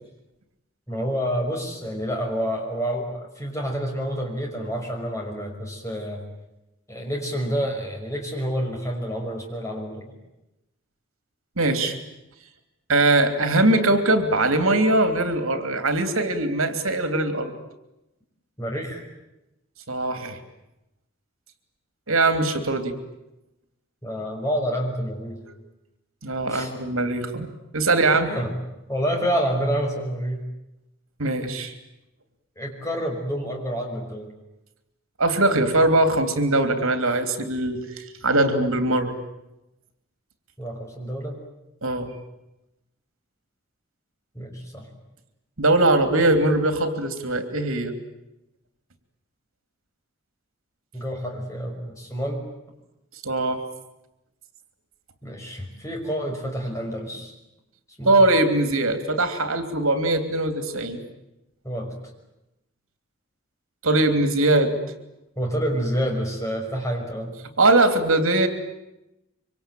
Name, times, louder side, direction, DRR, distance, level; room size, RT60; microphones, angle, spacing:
voice 1, 0.9-6.2 6.9-10.1 18.6-19.0 24.0-25.4 26.5-26.7 28.3-28.5 28.9-30.4 32.6-34.3 40.6-41.4 44.3-44.9 50.9-52.4 55.2-57.3 58.0-58.2 61.6-61.9 65.4-67.3, equal, 15° left, 1 dB, 5.9 m, -28 dB
voice 2, 11.6-12.0 12.9-17.5 19.9-20.4 22.1-22.9 26.2-28.3 31.2-31.7 35.2-39.1 41.8-42.1 45.6-47.9 53.2-53.6 58.0-61.0 63.8-64.8 67.6-68.5, right 2 dB, 85° right, 8 dB, 3.0 m, -21 dB
26.0 x 25.0 x 9.2 m, 0.92 s
head